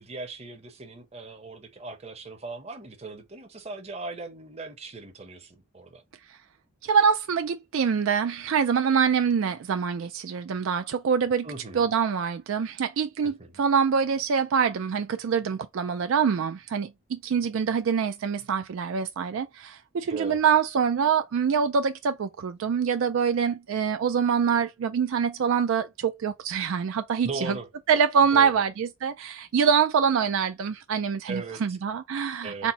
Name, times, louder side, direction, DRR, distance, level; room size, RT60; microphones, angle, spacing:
voice 1, 0.0-6.0 11.4-11.9 13.2-13.6 20.1-20.4 27.2-27.7 28.3-28.6 31.3-31.8 32.4-32.7, right 3 dB, 30° right, 0.7 m, -38 dB
voice 2, 6.8-11.5 11.7-27.6 27.9-32.7, right 6 dB, 65° right, 0.3 m, -25 dB
4.3 x 2.1 x 3.9 m
head